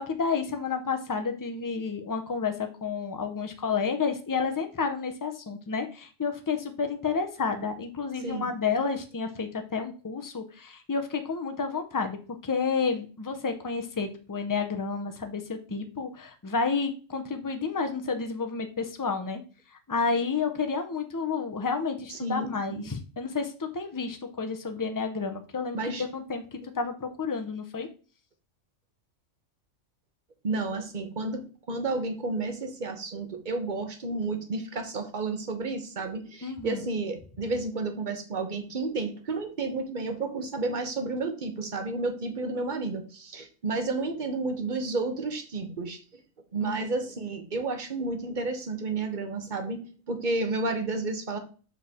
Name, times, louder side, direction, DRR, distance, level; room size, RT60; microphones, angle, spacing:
voice 1, 0.0-19.4 19.9-27.9 36.4-36.8 46.6-46.8, left 5 dB, 20° left, 6 dB, 0.5 m, -30 dB
voice 2, 8.2-8.5 22.1-22.9 25.7-26.0 30.4-46.2 46.5-49.8 50.1-51.4, right 3 dB, 40° right, 7 dB, 1.0 m, -31 dB
7.2 x 4.5 x 3.6 m, 0.38 s
omnidirectional pair, 1.4 m